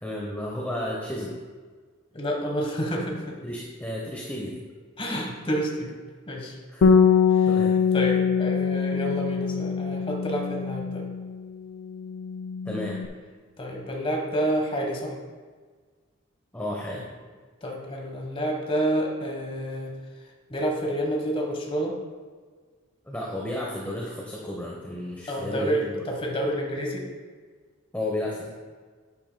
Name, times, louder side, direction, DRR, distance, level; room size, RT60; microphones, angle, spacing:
voice 1, 0.0-1.4 3.4-4.6 6.7-7.0 7.5-7.8 12.7-13.0 16.5-17.1 23.1-26.0 27.9-28.5, left 1 dB, 10° left, -3 dB, 0.9 m, -33 dB
voice 2, 2.1-3.4 5.0-5.9 6.3-6.6 7.3-7.4 7.9-11.0 13.6-15.1 17.6-19.9 20.5-22.0 25.3-27.0, equal, 25° left, 0 dB, 1.3 m, -29 dB
Bass guitar, 6.8-11.5 11.8-13.1, left 6 dB, 70° left, 0.4 m, -23 dB
10.5 x 9.4 x 2.3 m, 1.5 s
head